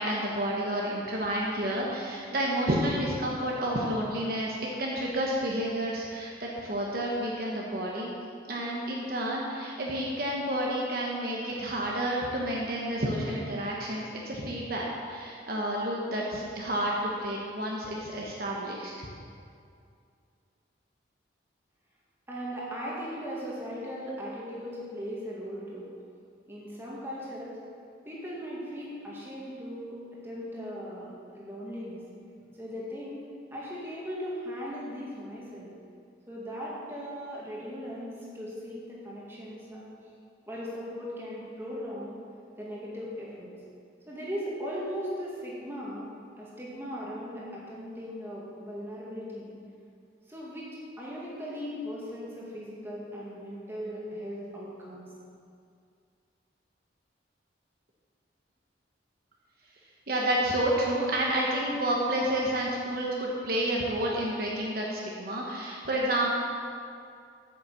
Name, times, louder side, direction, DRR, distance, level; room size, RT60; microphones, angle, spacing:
voice 1, 0.0-8.1 8.5-19.1 60.1-66.3, right 1 dB, 50° right, -3 dB, 1.2 m, -30 dB
voice 2, 22.3-25.9 26.5-27.6 28.1-30.0 30.2-32.0 32.6-33.2 33.5-35.7 36.3-39.8 40.5-42.2 42.6-43.5 44.1-46.1 46.4-49.6 50.3-50.7 51.0-55.0, equal, 15° right, -6 dB, 2.2 m, -38 dB
8.8 x 6.7 x 6.9 m, 2.4 s
head